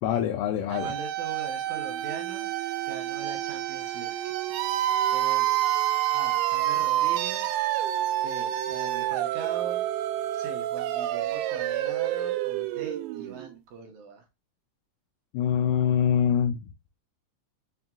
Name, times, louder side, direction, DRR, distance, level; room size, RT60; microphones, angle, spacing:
voice 1, 0.0-0.9 15.3-16.6, left 9 dB, 80° left, 2.1 m, -24 dB
sound 1, 0.7-13.5, right 13 dB, 90° right, 2.3 m, -28 dB
voice 2, 0.8-4.3 5.1-5.8 6.1-7.6 8.2-9.8 10.3-14.3, right 5 dB, 70° right, 2.1 m, -41 dB
5.8 x 2.7 x 2.2 m
omnidirectional pair, 4.0 m